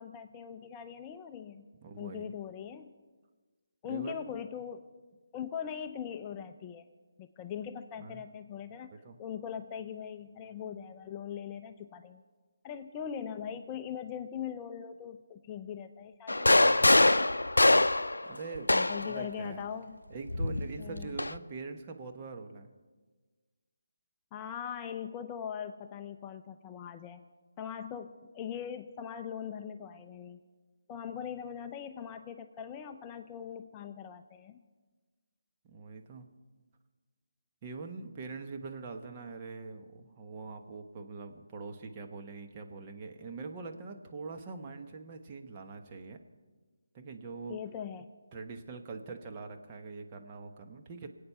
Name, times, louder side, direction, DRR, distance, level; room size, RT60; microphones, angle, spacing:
voice 1, 0.0-1.7 2.0-2.9 3.8-4.8 5.3-6.8 7.2-8.9 9.2-12.2 12.6-17.1 18.7-20.0 20.8-21.2 24.3-27.2 27.6-30.4 30.9-34.6 47.5-48.1, left 8 dB, 20° left, 7 dB, 0.5 m, -41 dB
voice 2, 1.8-2.3 3.9-4.4 8.0-8.2 8.9-9.2 16.6-16.9 18.2-19.6 20.1-22.7 35.6-36.3 37.6-46.2 46.9-47.6 48.3-51.1, right 4 dB, 30° right, 4 dB, 1.2 m, -43 dB
sound 1, 16.3-19.2 20.3-21.4, left 2 dB, 90° left, 0.4 m, -24 dB
24.0 x 8.7 x 5.7 m, 1.4 s
figure-of-eight pair, 155°, 0 cm